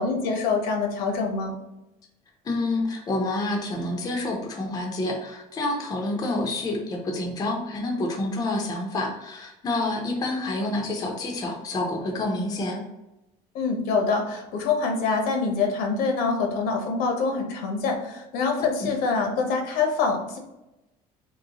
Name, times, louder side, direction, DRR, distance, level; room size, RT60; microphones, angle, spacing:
voice 1, 0.0-1.5 13.5-20.4, left 4 dB, 75° left, 3 dB, 0.8 m, -25 dB
voice 2, 2.4-12.8 18.8-18.9, left 2 dB, 25° left, 0 dB, 0.6 m, -28 dB
3.9 x 3.0 x 2.9 m, 0.95 s
cardioid pair, 165°, 16 cm